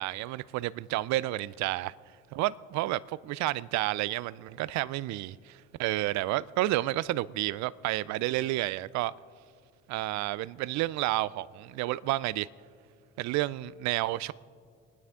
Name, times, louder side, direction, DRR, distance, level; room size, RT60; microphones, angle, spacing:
voice 1, 0.0-1.9 2.3-9.1 9.9-12.5 13.2-14.3, right 17 dB, 55° right, 0.5 m, -30 dB
25.0 x 9.7 x 3.7 m
hypercardioid pair, 65°, 34 cm